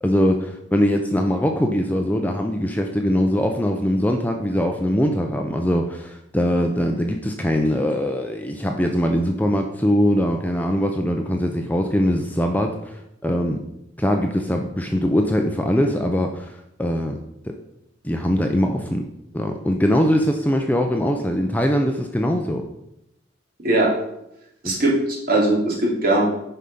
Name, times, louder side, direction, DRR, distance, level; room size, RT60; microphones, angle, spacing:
voice 1, 0.0-13.6 14.0-16.5 16.8-17.2 17.4-17.6 18.0-19.0 19.3-22.6 24.6-24.8, equal, 10° left, 3 dB, 0.6 m, -22 dB
voice 2, 24.6-26.2, right 2 dB, 50° right, -3 dB, 2.6 m, -20 dB
10.0 x 4.9 x 5.4 m, 0.84 s
head